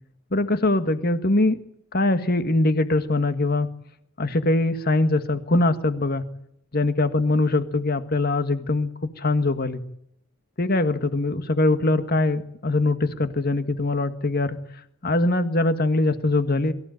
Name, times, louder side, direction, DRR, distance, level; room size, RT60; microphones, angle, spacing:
voice 1, 0.3-1.6 1.9-3.7 4.2-6.2 6.7-9.8 10.6-14.6 15.0-16.7, left 2 dB, 45° left, 10 dB, 1.8 m, -22 dB
23.5 x 15.5 x 9.3 m, 0.74 s
head